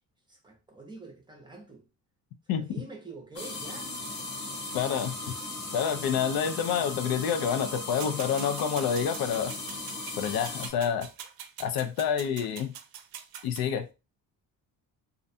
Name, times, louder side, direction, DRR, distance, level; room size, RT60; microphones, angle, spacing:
voice 1, 0.3-1.9 2.5-4.0 4.7-4.9, right 3 dB, 15° right, 0.5 m, -46 dB
sound 1, 3.4-10.7, left 2 dB, 30° left, 0.6 m, -37 dB
voice 2, 4.7-5.2 5.7-9.5 10.2-11.1 11.6-12.7 13.4-13.9, left 8 dB, 80° left, 0.5 m, -28 dB
sound 2, 8.0-13.7, right 8 dB, 85° right, 0.5 m, -44 dB
2.5 x 2.1 x 2.6 m
cardioid pair, 155°, 36 cm